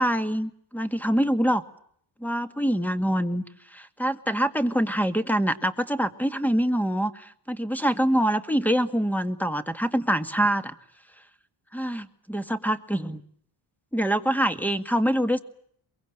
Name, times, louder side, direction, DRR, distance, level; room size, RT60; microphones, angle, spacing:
voice 1, 0.0-1.6 2.2-3.4 3.7-10.7 11.7-13.2 13.9-15.4, equal, 5° left, 11 dB, 2.0 m, -25 dB
23.0 x 23.0 x 9.1 m, 0.65 s
cardioid pair, 95°, 49 cm